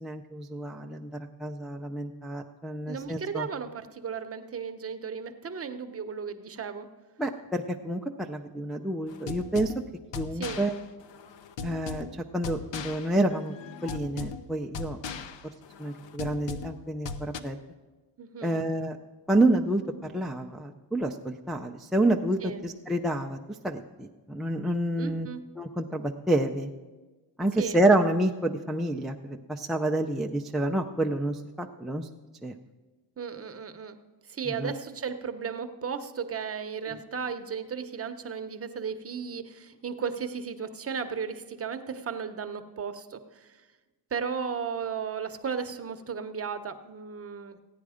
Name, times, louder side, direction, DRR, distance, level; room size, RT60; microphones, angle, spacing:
voice 1, 0.0-1.1 1.4-3.5 7.2-9.7 10.2-10.7 11.6-12.1 12.3-13.5 13.8-15.0 15.8-17.6 18.4-19.0 19.3-19.8 20.1-23.4 23.6-25.3 25.6-26.7 27.4-32.1 32.4-32.5 34.6-34.7, right 1 dB, ahead, 1 dB, 0.3 m, -28 dB
voice 2, 2.9-6.9 10.3-10.6 18.2-18.6 22.4-22.6 25.0-25.4 27.6-27.8 33.2-34.0 34.2-43.6 44.1-47.6, right 6 dB, 30° right, 8 dB, 0.8 m, -35 dB
sound 1, 9.1-17.4, left 5 dB, 65° left, 0.8 m, -39 dB
15.0 x 9.4 x 4.9 m, 1.3 s
cardioid pair, 120°, 48 cm